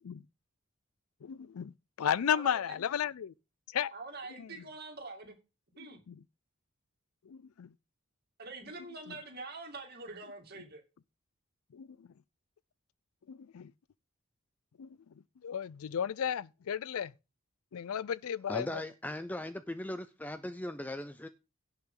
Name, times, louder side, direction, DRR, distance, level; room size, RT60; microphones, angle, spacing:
voice 1, 1.2-1.7 2.0-3.3 3.7-3.9 4.4-4.5 5.8-6.2 7.3-7.7 11.7-12.1 13.3-13.7 14.8-14.9 15.4-17.1 17.7-18.8, left 8 dB, 80° left, 0.4 m, -34 dB
voice 2, 2.3-2.6 3.9-5.4 5.8-6.0 8.4-10.8, right 3 dB, 45° right, 2.5 m, -45 dB
voice 3, 18.5-21.3, left 1 dB, 5° left, 0.4 m, -38 dB
17.0 x 5.8 x 3.8 m
head